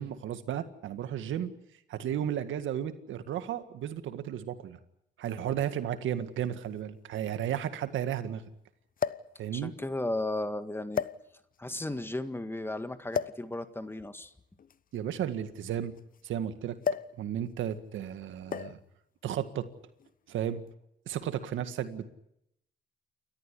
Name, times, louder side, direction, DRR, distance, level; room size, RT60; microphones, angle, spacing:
voice 1, 0.0-1.5 1.9-4.8 5.2-8.4 9.4-9.7 14.9-16.0 16.2-16.8 17.2-18.8 19.2-19.7 20.3-20.6 21.1-22.2, right 10 dB, 80° right, 10 dB, 1.9 m, -34 dB
sound 1, 5.2-5.3 6.4-6.5 6.8-6.9 9.0-9.4 10.2-10.4 10.9-11.6 13.1-13.5 14.6-16.2 16.8-17.2 17.5-17.7 18.5-18.9 19.8-20.1, left 7 dB, 45° left, 0.9 m, -34 dB
voice 2, 9.5-11.0 11.6-14.3, left 1 dB, 10° left, 9 dB, 1.8 m, -35 dB
29.0 x 13.5 x 10.0 m, 0.81 s
cardioid pair, 90°, 20 cm